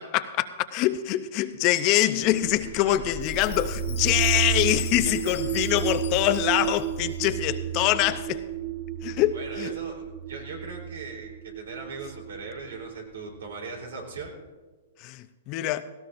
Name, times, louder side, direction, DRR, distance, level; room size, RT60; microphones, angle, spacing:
voice 1, 0.0-8.4 9.0-9.7 15.0-15.8, left 14 dB, 40° left, 0.6 m, -24 dB
sound 1, 2.2-14.0, right 9 dB, 30° right, 1.2 m, -32 dB
voice 2, 2.6-3.0 5.0-5.6 9.3-14.3, right 3 dB, 85° right, 3.7 m, -40 dB
Chime, 3.2-7.4, left 9 dB, 80° left, 2.3 m, -42 dB
17.5 x 16.0 x 2.6 m
hypercardioid pair, 135°, 0 cm